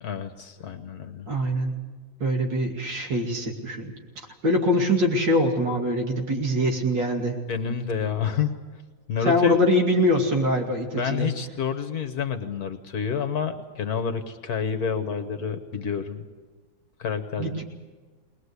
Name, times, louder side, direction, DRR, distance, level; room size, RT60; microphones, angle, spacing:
voice 1, 0.0-1.3 7.5-8.6 9.1-9.6 11.0-16.3 17.0-17.6, left 6 dB, 55° left, 8 dB, 1.5 m, -29 dB
voice 2, 1.3-1.7 2.2-3.9 4.4-7.4 9.2-11.3 17.4-17.6, left 1 dB, 70° right, 2 dB, 3.2 m, -23 dB
21.0 x 20.5 x 8.2 m, 1.4 s
omnidirectional pair, 2.1 m